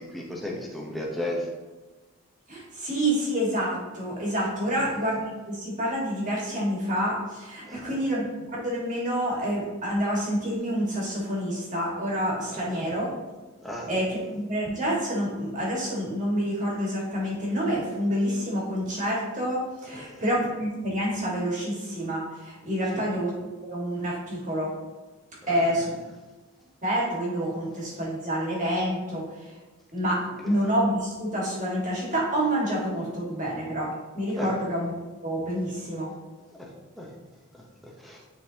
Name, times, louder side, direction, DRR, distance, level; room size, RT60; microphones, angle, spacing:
voice 1, 0.0-1.5 4.7-4.8 7.7-8.0 12.5-13.0 13.6-13.9 19.9-20.2 22.9-23.0 25.4-25.8 30.4-30.5 34.4-34.5 36.5-36.7 37.0-37.1 37.5-38.2, left 1 dB, ahead, -2 dB, 0.8 m, -35 dB
voice 2, 2.5-8.2 8.5-13.1 13.9-23.3 23.7-24.7 25.5-25.9 26.8-29.5 29.9-34.9 35.2-36.1, equal, 35° right, -4 dB, 1.6 m, -28 dB
9.0 x 3.9 x 2.8 m, 1.2 s
head